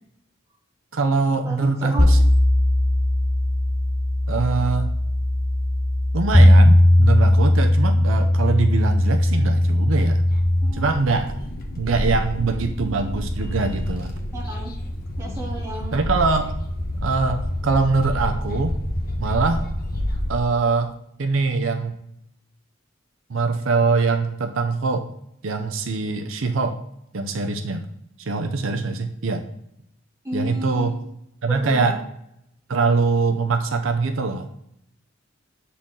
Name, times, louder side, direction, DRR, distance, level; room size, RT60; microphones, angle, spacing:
voice 1, 0.9-2.2 4.3-4.9 6.1-10.2 10.7-11.3 11.8-14.1 15.9-16.6 17.0-18.7 19.2-19.6 20.3-20.9 21.2-22.0 23.3-25.1 25.4-26.8 27.1-27.8 28.2-29.4 30.3-30.9 31.4-32.0 32.7-34.5, right 4 dB, 80° right, 6 dB, 0.6 m, -23 dB
voice 2, 1.4-2.1 10.6-10.9 14.3-14.7 15.2-16.0 30.2-30.9 31.5-32.0, right 1 dB, 15° right, -4 dB, 2.1 m, -32 dB
sound 1, 2.0-10.7, left 1 dB, 10° left, 0.4 m, -17 dB
sound 2, 10.3-20.4, left 1 dB, 50° left, 1.0 m, -28 dB
7.3 x 4.2 x 3.7 m, 0.76 s
head